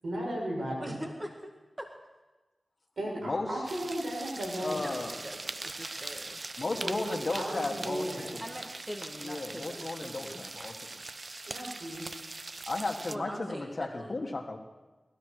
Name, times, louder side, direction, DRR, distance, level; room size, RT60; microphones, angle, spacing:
voice 1, 0.0-1.0 3.0-4.9 6.8-8.4 11.5-12.0, right 1 dB, 75° right, -3 dB, 6.8 m, -35 dB
voice 2, 0.8-1.5 1.8-1.9 4.7-6.4 8.4-10.4 13.1-14.2, equal, 20° right, 3 dB, 1.8 m, -43 dB
sound 1, 3.7-13.2, right 2 dB, 45° right, 0.6 m, -41 dB
voice 3, 4.6-5.2 6.6-8.1 8.3-8.4 9.2-10.9 12.7-14.6, left 2 dB, 50° left, 4 dB, 1.8 m, -34 dB
19.0 x 13.0 x 4.9 m, 1.2 s
cardioid pair, 50°, 0 cm